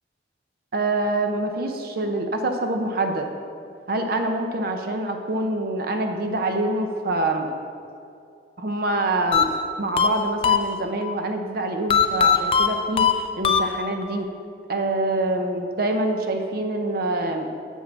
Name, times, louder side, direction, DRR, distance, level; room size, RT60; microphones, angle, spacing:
voice 1, 0.7-3.3 3.9-7.5 8.6-9.5 9.8-13.1 13.4-14.3 14.7-17.5, right 2 dB, 55° right, 4 dB, 0.6 m, -25 dB
sound 1, 9.3-11.1 11.9-14.2, left 7 dB, 30° left, 0.3 m, -21 dB
7.4 x 5.4 x 6.1 m, 2.5 s
head